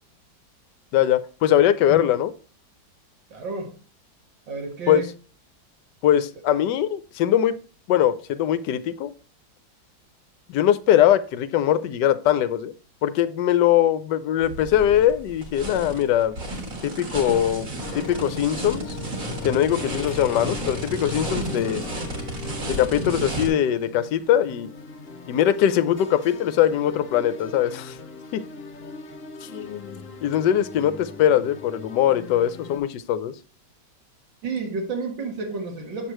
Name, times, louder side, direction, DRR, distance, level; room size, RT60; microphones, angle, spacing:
voice 1, 0.9-2.3 4.9-5.1 6.0-7.5 7.9-9.1 10.5-12.7 13.0-16.4 16.8-17.7 17.9-19.0 19.4-21.8 22.7-24.7 25.3-28.0 28.3-28.4 29.4-33.3, left 11 dB, 75° left, 13 dB, 1.1 m, -21 dB
voice 2, 3.3-3.7 4.5-5.1 34.4-36.1, right 3 dB, 85° right, 2 dB, 2.3 m, -30 dB
sound 1, 14.4-23.5, right 2 dB, 45° right, 1.8 m, -32 dB
sound 2, 17.8-32.8, left 5 dB, 40° left, 0.9 m, -39 dB
7.8 x 6.4 x 3.0 m, 0.37 s
omnidirectional pair, 2.0 m